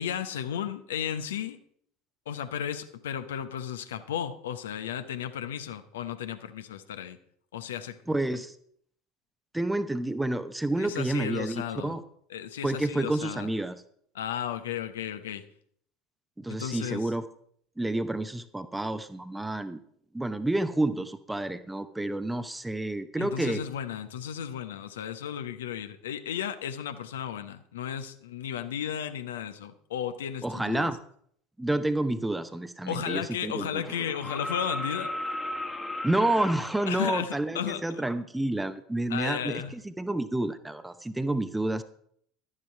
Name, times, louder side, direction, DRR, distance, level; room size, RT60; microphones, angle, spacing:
voice 1, 0.0-1.6 2.3-7.2 7.5-8.0 8.3-8.4 10.8-12.0 12.3-13.5 14.1-15.4 16.5-17.1 23.2-30.9 32.9-35.2 36.9-38.0 39.1-39.7, left 9 dB, 70° left, 10 dB, 0.8 m, -34 dB
voice 2, 8.1-8.6 9.5-12.0 12.6-13.8 16.4-17.3 17.8-19.8 20.1-23.6 30.4-31.0 31.6-34.1 36.0-41.8, right 2 dB, 10° right, 11 dB, 0.8 m, -29 dB
sound 1, 32.7-32.8 33.8-37.0 38.8-38.9, left 1 dB, 10° left, 1.4 m, -35 dB
12.0 x 9.9 x 4.6 m, 0.64 s
figure-of-eight pair, 70°, 0 cm